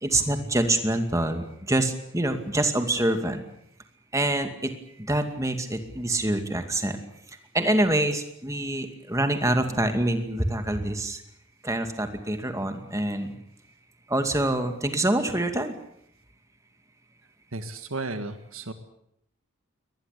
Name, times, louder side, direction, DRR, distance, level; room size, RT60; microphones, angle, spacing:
voice 1, 0.0-3.4 4.1-7.0 7.5-11.2 11.6-13.4 14.1-15.7, right 1 dB, 15° right, 7 dB, 2.3 m, -26 dB
voice 2, 17.5-18.7, right 2 dB, 75° right, 8 dB, 1.8 m, -34 dB
23.5 x 20.0 x 8.4 m, 0.73 s
head